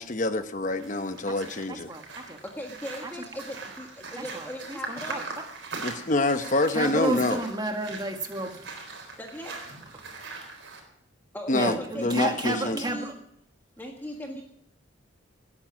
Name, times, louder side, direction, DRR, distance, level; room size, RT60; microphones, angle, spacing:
voice 1, 0.0-1.9 5.8-7.4 11.5-12.8, left 2 dB, 40° left, 10 dB, 1.0 m, -26 dB
sound 1, 0.7-10.8, right 3 dB, 70° right, 4.0 m, -41 dB
voice 2, 1.7-2.4 3.0-3.1 4.2-5.2 6.7-8.7 9.9-10.1 11.5-13.1, right 2 dB, 20° right, 5 dB, 1.6 m, -32 dB
voice 3, 2.4-5.2 9.2-9.6 11.3-13.1 13.8-14.4, equal, 10° left, 1 dB, 1.5 m, -39 dB
18.5 x 9.8 x 6.2 m, 0.74 s
head